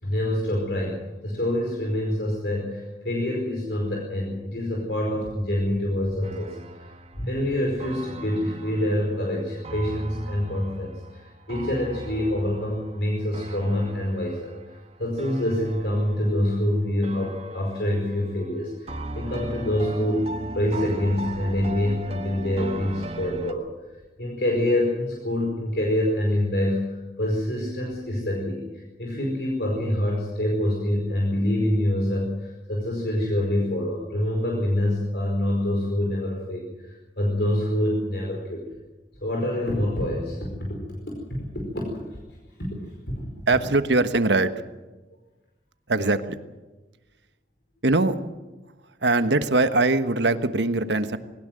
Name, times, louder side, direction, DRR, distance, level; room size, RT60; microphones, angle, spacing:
voice 1, 0.0-23.7 24.2-38.7 39.2-40.7 41.5-41.8 43.1-43.3, left 1 dB, 65° left, -1 dB, 4.9 m, -26 dB
sound 1, 6.2-16.7 17.0-18.5 18.9-23.5, right 2 dB, 35° right, 1.4 m, -38 dB
voice 2, 43.5-44.5 45.9-46.4 47.8-48.2 49.0-51.2, right 2 dB, 75° right, 10 dB, 1.3 m, -21 dB
21.0 x 19.0 x 7.7 m, 1.2 s
head